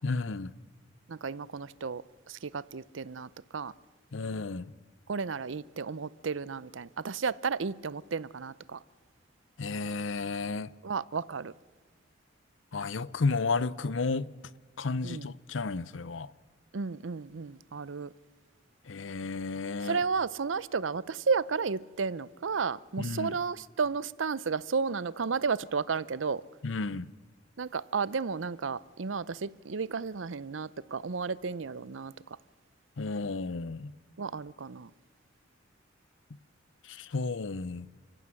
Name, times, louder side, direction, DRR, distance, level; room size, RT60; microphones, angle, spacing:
voice 1, 0.0-0.5 4.1-4.7 9.6-10.7 12.7-14.3 14.8-16.3 18.9-20.0 23.0-23.4 26.6-27.1 33.0-33.9 36.8-37.9, left 3 dB, 85° left, 0.7 m, -32 dB
voice 2, 1.1-2.0 2.3-3.7 5.1-8.8 10.8-11.5 15.0-15.2 16.7-18.1 19.8-26.4 27.6-32.1 34.2-34.9, right 5 dB, 85° right, 0.6 m, -33 dB
29.5 x 15.5 x 7.7 m
head